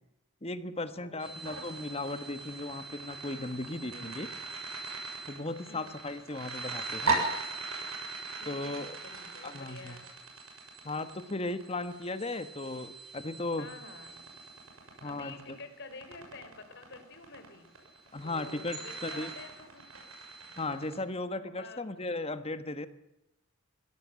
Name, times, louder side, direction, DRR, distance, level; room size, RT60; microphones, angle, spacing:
voice 1, 0.4-4.3 5.3-7.2 8.4-9.0 9.4-10.0 10.8-13.7 15.0-15.6 18.1-19.3 20.6-22.9, left 2 dB, 25° left, 11 dB, 1.3 m, -36 dB
voice 2, 1.0-1.4 3.9-4.2 5.7-6.0 8.3-8.8 9.0-10.1 13.6-14.3 15.0-17.7 18.2-19.8 20.5-20.9 21.5-21.8, left 3 dB, 50° left, 8 dB, 3.7 m, -49 dB
sound 1, 1.2-20.9, right 3 dB, 70° right, 6.9 m, -39 dB
21.5 x 16.5 x 7.6 m, 0.89 s
head